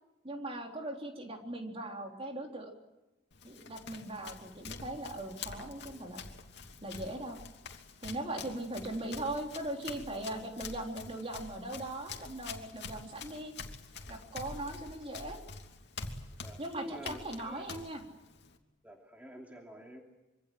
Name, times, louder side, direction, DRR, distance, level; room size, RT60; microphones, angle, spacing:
voice 1, 0.2-2.7 3.4-6.2 6.8-7.4 8.0-13.5 14.1-15.4 16.6-18.0, right 1 dB, 30° right, 2 dB, 3.8 m, -39 dB
Run, 3.3-18.6, left 4 dB, 60° left, 2.9 m, -47 dB
voice 2, 16.4-17.7 18.8-20.0, equal, 10° right, 0 dB, 2.9 m, -48 dB
26.0 x 25.5 x 7.8 m, 1.0 s
head